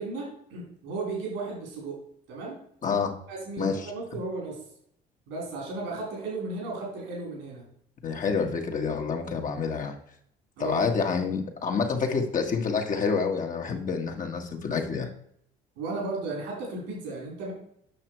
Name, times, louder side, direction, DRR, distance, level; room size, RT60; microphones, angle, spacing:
voice 1, 0.0-2.0 2.3-2.6 3.3-4.6 5.3-7.6 10.6-10.9 15.8-17.5, right 3 dB, 85° right, -2 dB, 4.0 m, -35 dB
voice 2, 2.8-3.1 3.6-3.7 8.0-9.9 10.6-15.1, left 5 dB, 45° left, 2 dB, 1.7 m, -28 dB
8.6 x 6.0 x 4.6 m, 0.69 s
supercardioid pair, 75°, 18 cm